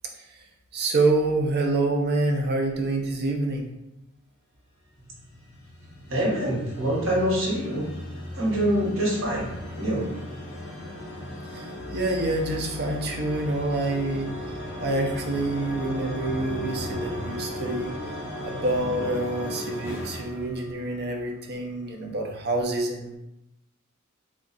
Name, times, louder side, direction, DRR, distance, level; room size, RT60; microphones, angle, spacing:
voice 1, 0.7-3.7 11.5-11.6 11.9-14.3 14.8-17.9 18.4-23.2, right 2 dB, 50° right, 2 dB, 0.6 m, -26 dB
sound 1, 5.2-21.3, left 1 dB, 60° left, 1.4 m, -36 dB
voice 2, 6.1-7.9 8.3-9.5 9.8-10.0, right 1 dB, 65° right, -4 dB, 1.2 m, -25 dB
3.6 x 2.4 x 4.0 m, 0.92 s
head